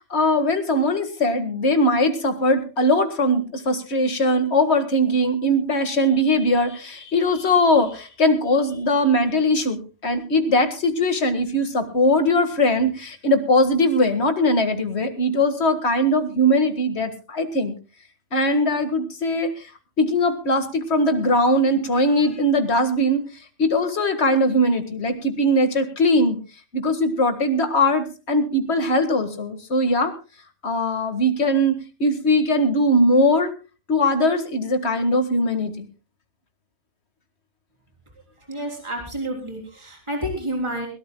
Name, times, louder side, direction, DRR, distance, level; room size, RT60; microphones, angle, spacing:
voice 1, 0.1-17.7 18.3-19.5 20.0-23.2 23.6-26.4 26.7-30.1 30.6-31.7 32.0-33.5 33.9-35.9, left 1 dB, 65° left, 8 dB, 2.1 m, -20 dB
voice 2, 38.4-40.9, right 1 dB, 25° right, 1 dB, 3.6 m, -29 dB
22.0 x 17.5 x 2.2 m, 0.32 s
omnidirectional pair, 1.2 m